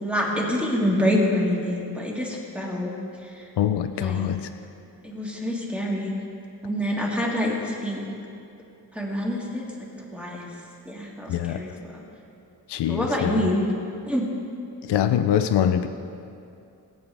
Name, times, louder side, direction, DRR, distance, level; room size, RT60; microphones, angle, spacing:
voice 1, 0.0-2.9 3.2-3.5 4.0-4.3 5.0-6.1 6.6-8.0 8.9-9.6 10.1-10.4 10.9-12.0 12.9-13.6 14.1-14.3, equal, 5° right, -3 dB, 1.9 m, -26 dB
voice 2, 3.6-4.5 11.3-11.7 12.7-13.5 14.8-15.9, left 10 dB, 75° left, 9 dB, 0.6 m, -24 dB
20.0 x 9.3 x 3.4 m, 2.6 s
wide cardioid pair, 135°, 41 cm